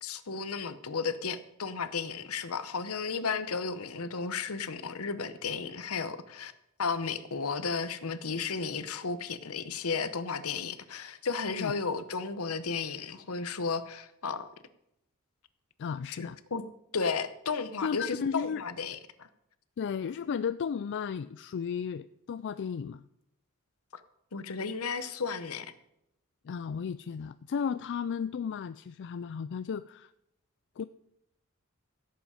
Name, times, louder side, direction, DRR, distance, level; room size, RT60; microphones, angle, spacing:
voice 1, 0.0-6.5 6.8-14.5 16.2-16.6 16.9-19.3 24.3-25.7, left 5 dB, 75° left, 12 dB, 0.9 m, -34 dB
voice 2, 15.8-16.4 17.8-18.6 19.8-23.0 26.4-30.1 30.8-30.9, left 6 dB, 55° left, 12 dB, 0.4 m, -34 dB
16.0 x 8.0 x 4.9 m, 0.81 s
head